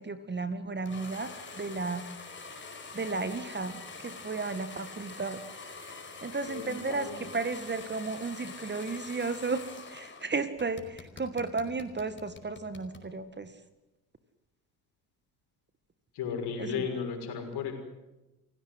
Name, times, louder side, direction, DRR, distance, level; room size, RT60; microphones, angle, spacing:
voice 1, 0.0-2.0 2.9-5.5 5.8-13.6 16.6-16.8, right 4 dB, 25° right, 11 dB, 1.9 m, -34 dB
sound 1, 0.9-10.3 10.6-13.1, left 4 dB, 25° left, 4.8 m, -45 dB
voice 2, 6.5-7.3 16.1-17.7, left 6 dB, 55° left, 5 dB, 6.2 m, -35 dB
29.0 x 17.0 x 8.1 m, 1.0 s
figure-of-eight pair, 55°, 46 cm